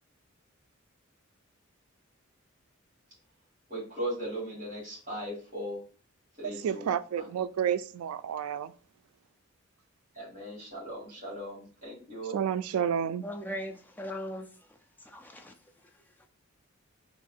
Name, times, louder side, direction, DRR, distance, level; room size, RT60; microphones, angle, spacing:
voice 1, 3.7-5.8 6.4-6.9 10.1-12.4, right 1 dB, 40° right, 1.6 m, -38 dB
voice 2, 6.4-8.7 12.3-13.2, right 8 dB, 85° right, 0.3 m, -30 dB
voice 3, 13.2-15.5, equal, 10° left, 0.4 m, -40 dB
2.8 x 2.5 x 4.3 m
head